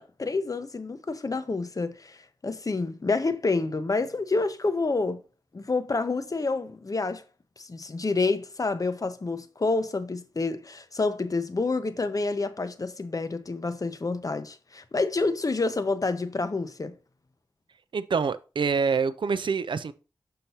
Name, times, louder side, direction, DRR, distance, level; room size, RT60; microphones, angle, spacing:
voice 1, 0.0-5.2 5.5-7.2 7.6-16.9, left 3 dB, 45° left, 0.7 m, -28 dB
voice 2, 17.9-19.9, right 5 dB, 70° right, 0.4 m, -26 dB
6.5 x 5.7 x 2.8 m
wide cardioid pair, 65°, 9 cm